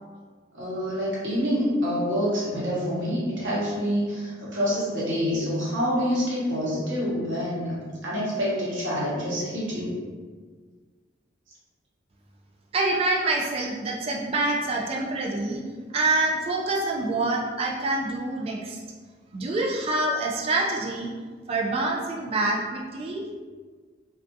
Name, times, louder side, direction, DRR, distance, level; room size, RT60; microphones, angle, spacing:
voice 1, 0.5-10.0, equal, 80° right, -7 dB, 0.9 m, -27 dB
voice 2, 12.7-15.6 15.9-18.8 19.3-21.1 21.5-23.2, right 2 dB, 30° right, -2 dB, 0.3 m, -26 dB
2.4 x 2.3 x 2.6 m, 1.5 s
head